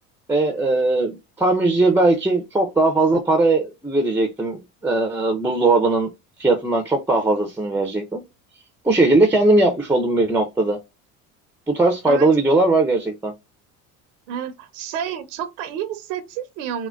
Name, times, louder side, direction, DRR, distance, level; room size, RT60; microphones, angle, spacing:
voice 1, 0.3-6.1 6.4-8.2 8.8-10.8 11.7-13.3, right 2 dB, 5° right, 0.4 m, -19 dB
voice 2, 14.3-16.9, right 9 dB, 85° right, 0.6 m, -29 dB
3.7 x 2.1 x 2.3 m
supercardioid pair, 100°, 35 cm